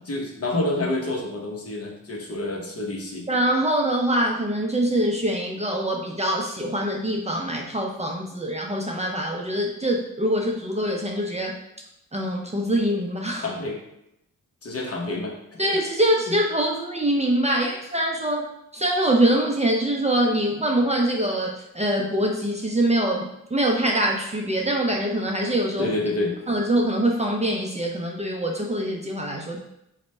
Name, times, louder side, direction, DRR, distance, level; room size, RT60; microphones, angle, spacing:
voice 1, 0.1-3.3 13.4-13.8 14.6-15.3 15.6-15.7 16.3-16.4 25.8-26.3, left 2 dB, 45° left, -1 dB, 0.8 m, -28 dB
voice 2, 3.3-11.6 12.1-13.4 15.6-18.4 18.7-25.9 26.5-29.6, right 1 dB, 20° right, 0 dB, 0.5 m, -24 dB
3.1 x 2.1 x 4.2 m, 0.82 s
cardioid pair, 70°, 33 cm